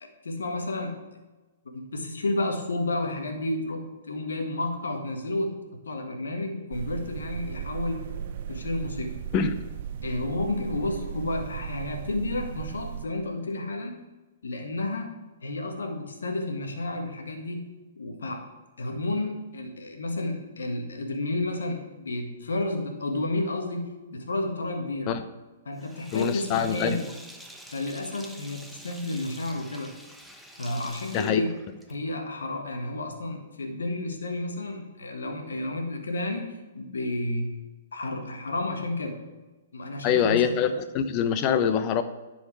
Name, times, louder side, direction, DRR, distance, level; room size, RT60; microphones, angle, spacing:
voice 1, 0.0-1.0 1.7-5.6 5.8-8.0 8.5-9.2 10.0-14.0 14.4-15.1 15.4-17.6 18.0-18.5 18.8-25.2 25.6-27.1 27.7-29.9 30.6-31.5 31.9-36.5 36.7-37.6 37.9-39.2 39.7-40.5, left 2 dB, 80° left, 4 dB, 1.5 m, -31 dB
sound 1, 6.7-13.0, right 8 dB, 55° right, 0.5 m, -36 dB
Sink (filling or washing), 25.8-32.2, equal, ahead, 0.8 m, -47 dB
voice 2, 26.1-27.0 31.1-31.4 40.0-42.0, left 8 dB, 35° left, 10 dB, 0.8 m, -24 dB
10.5 x 4.8 x 4.7 m, 1.2 s
hypercardioid pair, 125°, 0 cm